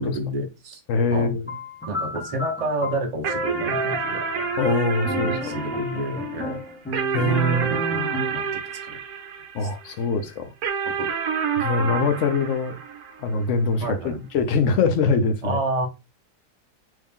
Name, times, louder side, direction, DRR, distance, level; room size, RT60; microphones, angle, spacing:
voice 1, 0.0-0.8 1.1-1.3 1.9-4.2 5.0-6.6 7.6-7.8 8.3-9.0 9.6-9.7 10.8-11.1 11.8-12.1 13.8-14.3 15.4-15.9, right 1 dB, 35° right, 0.6 m, -30 dB
voice 2, 0.9-1.5 4.6-5.5 7.1-7.7 9.5-10.5 11.6-12.8 13.2-15.6, left 3 dB, 70° left, 0.7 m, -23 dB
sound 1, 1.5-8.5, left 1 dB, 15° left, 0.4 m, -32 dB
sound 2, 3.2-9.9 10.6-13.4, right 6 dB, 70° right, 1.2 m, -29 dB
3.1 x 2.7 x 3.5 m
omnidirectional pair, 1.8 m